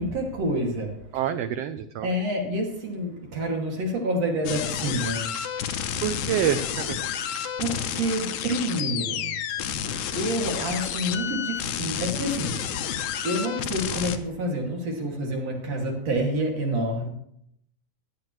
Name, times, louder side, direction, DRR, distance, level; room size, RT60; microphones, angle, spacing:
voice 1, 0.0-1.0 2.0-5.3 7.6-9.4 10.1-12.6 13.2-17.1, right 1 dB, 55° right, 0 dB, 3.4 m, -28 dB
voice 2, 1.1-2.1 6.0-7.0, right 10 dB, 85° right, 9 dB, 1.4 m, -27 dB
sound 1, 4.5-14.2, left 8 dB, 75° left, 2.2 m, -30 dB
18.0 x 12.0 x 3.2 m, 0.74 s
omnidirectional pair, 3.5 m